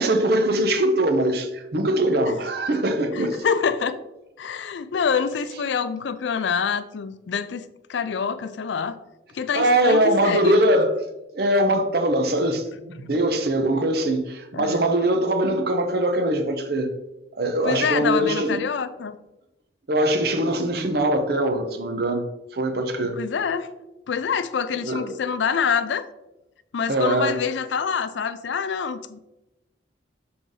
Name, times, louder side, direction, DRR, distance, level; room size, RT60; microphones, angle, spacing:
voice 1, 0.0-3.4 9.5-11.0 11.3-16.9 17.4-18.6 19.9-22.2 22.5-23.2 24.8-25.1 26.9-27.4, right 1 dB, 55° right, 0.7 m, -22 dB
voice 2, 3.1-4.0 4.4-9.0 9.3-10.6 14.5-14.9 17.6-19.2 23.1-23.7 24.1-26.0 26.7-29.2, left 6 dB, 75° left, 0.4 m, -26 dB
6.2 x 3.9 x 3.9 m
head